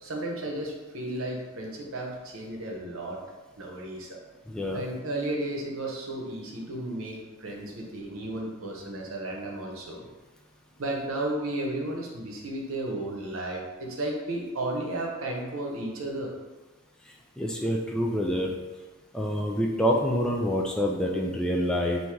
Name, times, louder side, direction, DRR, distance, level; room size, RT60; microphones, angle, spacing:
voice 1, 0.0-3.2 3.6-4.2 4.7-10.0 10.8-16.3, right 1 dB, 75° right, -1 dB, 0.9 m, -33 dB
voice 2, 4.5-4.9 17.4-18.5 19.1-22.0, equal, 5° left, -1 dB, 0.3 m, -26 dB
3.6 x 2.7 x 4.4 m, 1.2 s
head